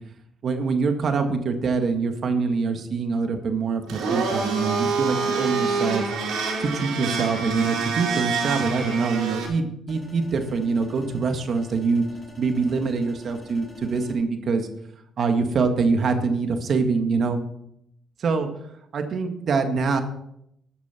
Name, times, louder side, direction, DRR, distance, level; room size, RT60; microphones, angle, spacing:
voice 1, 0.4-6.1 6.6-12.1 12.4-14.7 15.2-17.4 18.2-18.5 18.9-20.0, right 4 dB, 55° right, 6 dB, 1.8 m, -24 dB
Domestic sounds home sounds, 3.9-9.5, right 4 dB, 85° right, 4.4 m, -26 dB
sound 1, 9.9-14.2, left 1 dB, 30° left, 4.2 m, -47 dB
14.0 x 9.6 x 4.4 m, 0.74 s
cardioid pair, 90°, 0 cm